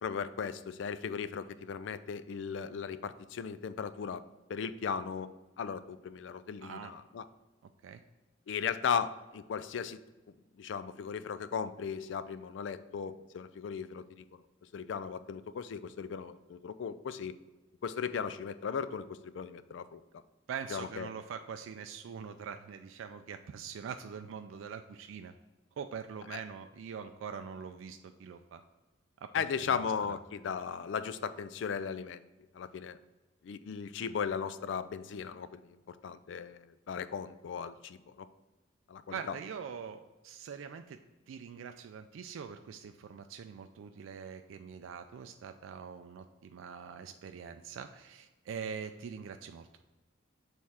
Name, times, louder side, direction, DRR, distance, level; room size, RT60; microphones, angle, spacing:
voice 1, 0.0-4.2 4.5-5.3 5.6-7.3 8.5-10.0 10.6-14.3 14.7-17.3 17.8-20.2 20.7-21.1 26.3-26.4 29.3-32.2 32.5-33.0 33.4-38.3 38.9-39.4, left 6 dB, 70° left, 13 dB, 0.3 m, -37 dB
voice 2, 6.6-6.9 7.8-8.0 20.5-25.3 25.8-28.6 29.2-29.8 30.1-30.2 39.1-41.0 41.3-49.7, right 6 dB, 85° right, 7 dB, 0.3 m, -43 dB
6.5 x 3.5 x 4.2 m, 1.2 s
head